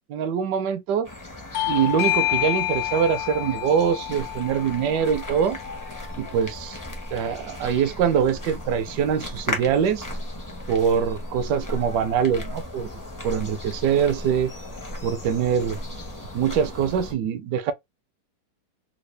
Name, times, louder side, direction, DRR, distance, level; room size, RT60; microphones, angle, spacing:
voice 1, 0.1-1.1 1.7-5.6 6.2-6.8 7.1-10.0 10.7-12.9 13.2-14.5 15.0-15.8 16.3-17.7, right 8 dB, 75° right, 1.1 m, -23 dB
sound 1, 1.0-17.1, left 1 dB, 20° left, 0.5 m, -36 dB
Bell / Doorbell, 1.5-6.7, left 17 dB, 70° left, 0.9 m, -29 dB
3.7 x 2.3 x 3.2 m
omnidirectional pair, 1.9 m